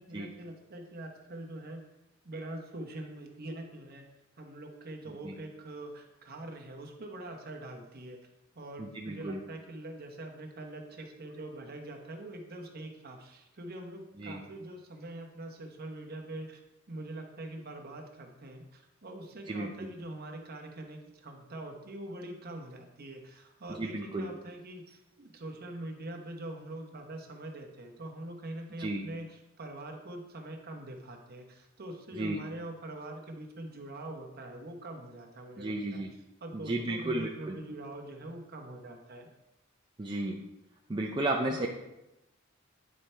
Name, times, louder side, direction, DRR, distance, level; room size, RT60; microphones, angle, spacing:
voice 1, 0.0-1.8 2.2-4.1 4.4-8.2 8.5-16.6 16.9-36.0 36.4-39.3 41.5-41.7, right 1 dB, 50° right, 3 dB, 1.0 m, -43 dB
voice 2, 8.8-9.4 14.2-14.4 19.5-19.7 23.7-24.3 28.8-29.0 32.2-32.4 35.6-36.1 36.5-37.6 40.0-40.4 40.9-41.7, right 2 dB, 25° right, 0 dB, 0.5 m, -33 dB
9.4 x 4.3 x 3.3 m, 0.93 s
head